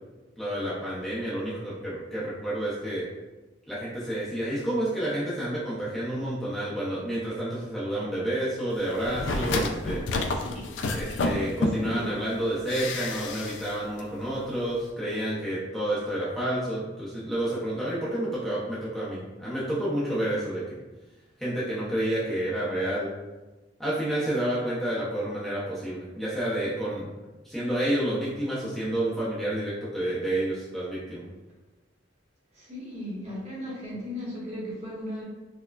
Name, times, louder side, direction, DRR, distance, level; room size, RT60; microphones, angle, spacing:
voice 1, 0.4-3.0 3.7-10.0 10.9-20.8 21.4-23.1 23.8-27.1 27.4-31.3, right 1 dB, ahead, -9 dB, 0.6 m, -29 dB
sound 1, 9.0-12.0 12.7-13.7 14.0-14.1, left 2 dB, 80° left, 0.3 m, -29 dB
voice 2, 10.1-11.0 11.4-12.1 32.5-35.2, left 1 dB, 40° right, -6 dB, 1.1 m, -37 dB
4.4 x 2.2 x 2.3 m, 1.1 s
head